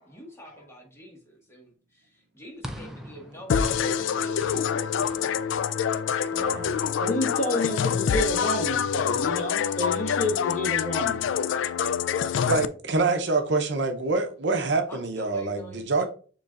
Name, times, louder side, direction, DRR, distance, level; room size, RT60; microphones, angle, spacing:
voice 1, 0.1-4.5 14.9-16.1, equal, 15° left, 1.6 m, -46 dB
sound 1, 2.6-7.1, equal, ahead, 0.5 m, -44 dB
sound 2, 3.5-12.7, left 7 dB, 85° left, 0.3 m, -26 dB
voice 2, 6.3-6.8 12.5-16.1, right 3 dB, 65° right, 0.7 m, -26 dB
voice 3, 7.0-11.8, left 2 dB, 40° left, 1.5 m, -29 dB
6.8 x 3.1 x 2.5 m
head